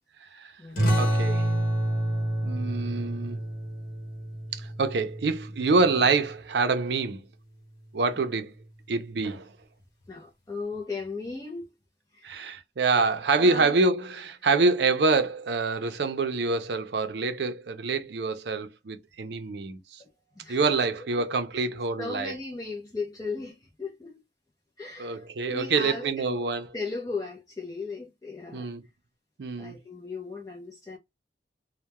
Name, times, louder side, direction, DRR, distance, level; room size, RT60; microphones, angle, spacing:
sound 1, 0.8-6.0, right 1 dB, 50° left, 1.2 m, -28 dB
voice 1, 1.0-1.5 2.4-3.4 4.5-7.2 7.9-8.5 8.9-9.5 12.2-20.0 20.5-22.3 25.0-26.7 28.5-28.8 29.4-29.8, right 3 dB, 75° right, 0.5 m, -26 dB
voice 2, 10.1-11.7 12.1-12.5 13.4-13.7 20.0-20.6 21.1-21.2 21.5-21.7 22.0-24.1 24.8-26.4 26.7-28.7 29.6-31.0, left 3 dB, 20° left, 0.4 m, -37 dB
2.2 x 2.1 x 2.9 m
head